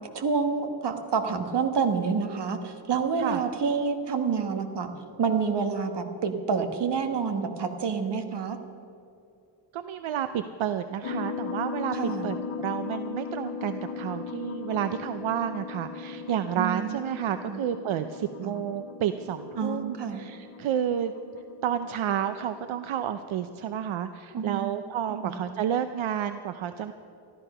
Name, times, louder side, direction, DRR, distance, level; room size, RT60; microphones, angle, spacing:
voice 1, 0.1-4.9 5.2-8.6 11.9-12.3 16.5-17.1 17.5-17.6 18.4-18.5 19.5-20.2 24.3-24.7 25.1-25.4, right 5 dB, 60° right, 6 dB, 1.4 m, -28 dB
voice 2, 9.7-21.1 21.6-26.9, right 9 dB, 80° right, 9 dB, 0.7 m, -30 dB
sound 1, 11.0-23.4, left 5 dB, 85° left, 1.1 m, -38 dB
13.5 x 13.0 x 5.5 m, 2.6 s
wide cardioid pair, 125°, 47 cm